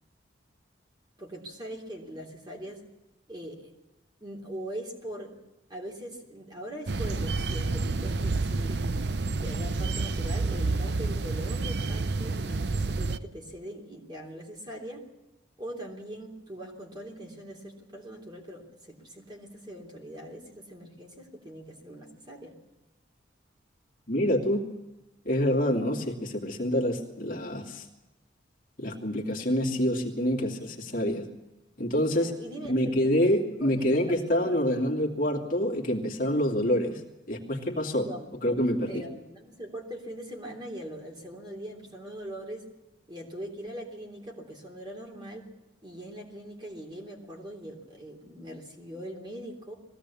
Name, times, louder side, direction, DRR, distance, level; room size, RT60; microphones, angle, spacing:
voice 1, 1.2-2.8 3.3-3.7 4.2-5.3 5.7-8.9 9.4-15.0 15.6-22.5 32.1-33.1 33.6-34.8 37.9-38.3 38.9-42.7 43.1-45.5 45.8-49.7, right 1 dB, 25° right, 1 dB, 3.4 m, -41 dB
sound 1, 6.9-13.2, right 3 dB, 55° right, 0.6 m, -29 dB
voice 2, 24.1-24.6 25.2-27.8 28.8-31.2 31.8-32.3 32.7-37.0 37.3-38.1 38.4-39.0, equal, 45° left, 1 dB, 2.4 m, -26 dB
21.0 x 17.0 x 8.4 m, 1.0 s
head